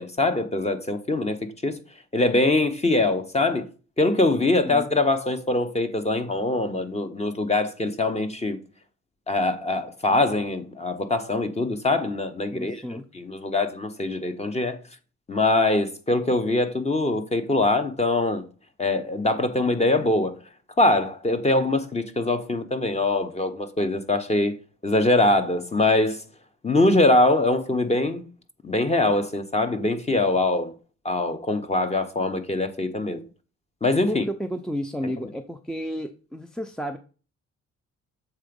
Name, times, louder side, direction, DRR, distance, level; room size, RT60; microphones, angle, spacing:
voice 1, 0.0-1.8 2.1-3.7 4.0-8.6 9.3-14.8 15.3-18.5 18.8-20.3 20.8-24.6 24.8-26.2 26.6-28.2 28.6-30.7 31.0-33.2 33.8-34.2, left 2 dB, 20° left, 1.0 m, -23 dB
voice 2, 12.5-13.0 34.1-37.0, equal, ahead, 0.6 m, -32 dB
7.3 x 4.0 x 5.2 m
cardioid pair, 90°, 30 cm